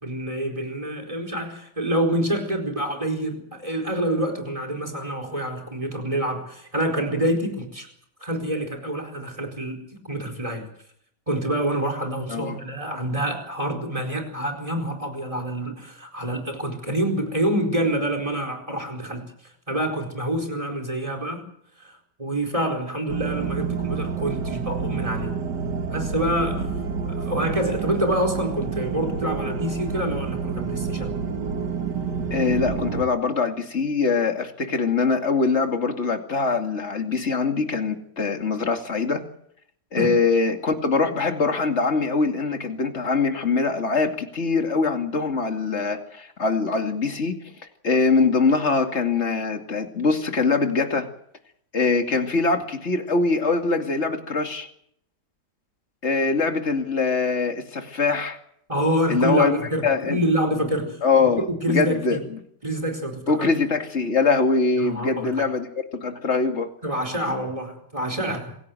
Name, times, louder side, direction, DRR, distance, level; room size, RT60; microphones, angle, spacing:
voice 1, 0.0-7.9 8.2-10.7 11.3-21.4 21.8-25.3 25.9-26.8 27.1-31.2 40.0-40.2 58.7-61.0 61.5-62.3 62.6-63.5 64.8-65.5 66.8-68.6, right 1 dB, 20° right, 7 dB, 4.5 m, -27 dB
sound 1, 23.1-33.0, right 5 dB, 90° right, 2.3 m, -28 dB
voice 2, 32.3-39.2 39.9-47.4 47.8-51.1 51.7-54.7 56.0-58.4 59.1-59.6 59.8-60.2 61.0-62.4 63.3-65.7 65.9-66.7, left 4 dB, 40° left, 5 dB, 2.7 m, -23 dB
26.0 x 16.5 x 7.8 m, 0.68 s
omnidirectional pair, 1.8 m